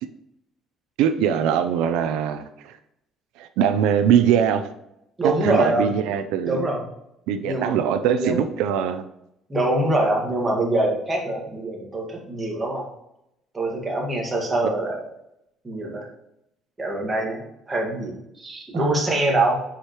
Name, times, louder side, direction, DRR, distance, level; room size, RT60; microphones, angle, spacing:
voice 1, 1.0-2.8 3.4-4.7 5.2-6.7 7.3-9.0 18.7-18.9, right 8 dB, 85° right, 10 dB, 0.5 m, -22 dB
voice 2, 5.2-5.9 6.5-6.8 7.4-8.4 9.5-12.9 13.5-15.0 15.6-16.1 16.8-19.6, right 2 dB, 15° right, -1 dB, 1.7 m, -24 dB
10.0 x 5.0 x 3.0 m, 0.81 s
cardioid pair, 165°, 0 cm